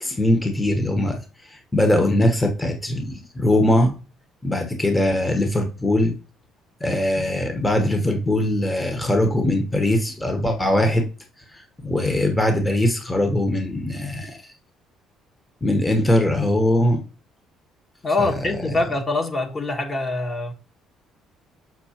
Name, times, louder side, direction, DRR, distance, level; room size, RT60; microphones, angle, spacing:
voice 1, 0.0-4.0 4.4-6.1 6.8-11.1 11.5-14.4 15.6-17.0 18.2-18.7, left 1 dB, 15° left, 1.1 m, -21 dB
voice 2, 18.0-20.5, left 2 dB, 35° left, 1.3 m, -24 dB
6.5 x 6.0 x 2.9 m
supercardioid pair, 75°, 0 cm